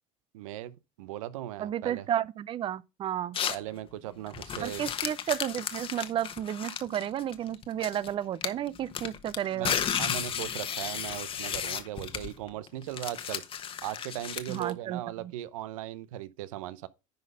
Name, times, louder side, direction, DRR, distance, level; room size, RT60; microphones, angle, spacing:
voice 1, 0.3-2.1 3.5-4.9 9.5-13.4 13.8-16.9, right 13 dB, 90° right, 0.8 m, -38 dB
voice 2, 1.6-3.4 4.6-9.7 14.5-15.0, right 11 dB, 30° right, 0.5 m, -32 dB
sound 1, 3.3-3.7 4.3-8.1 8.4-14.7, left 8 dB, 35° left, 1.2 m, -34 dB
10.5 x 4.1 x 5.5 m
supercardioid pair, 115°, 17 cm